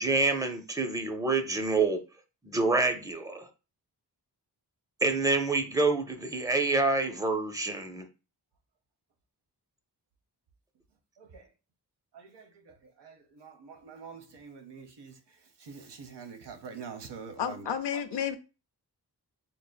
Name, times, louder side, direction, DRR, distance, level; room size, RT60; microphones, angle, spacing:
voice 1, 0.0-2.0 2.4-3.5 5.0-8.1, right 3 dB, 10° right, 0.5 m, -27 dB
voice 2, 11.2-11.5 12.1-18.2, right 5 dB, 80° right, 0.8 m, -46 dB
voice 3, 17.4-18.4, left 8 dB, 85° left, 0.6 m, -31 dB
5.4 x 2.5 x 2.2 m
wide cardioid pair, 105°, 41 cm